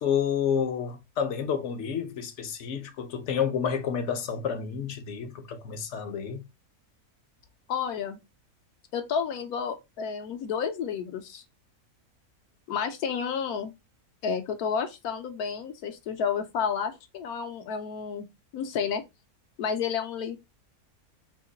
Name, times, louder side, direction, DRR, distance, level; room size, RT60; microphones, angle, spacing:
voice 1, 0.0-6.4, left 7 dB, 60° left, 0.8 m, -29 dB
voice 2, 7.7-8.2 8.9-11.4 12.7-13.7 14.2-18.3 18.5-19.0 19.6-20.4, left 6 dB, 80° left, 1.1 m, -31 dB
3.0 x 2.8 x 3.7 m
omnidirectional pair, 1.6 m